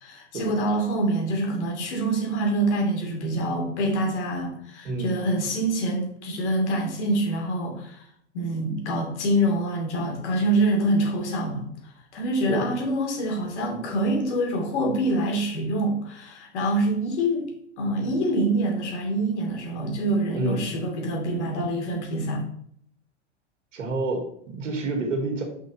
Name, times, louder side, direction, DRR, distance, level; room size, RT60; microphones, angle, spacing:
voice 1, 0.0-8.1 8.3-11.7 12.1-17.5 17.8-22.4, right 1 dB, 70° left, 1 dB, 2.7 m, -25 dB
voice 2, 4.8-5.2 12.5-12.7 20.3-20.7 23.7-25.4, right 3 dB, 85° right, 3 dB, 2.2 m, -28 dB
6.4 x 5.6 x 4.2 m, 0.67 s
hypercardioid pair, 105°, 36 cm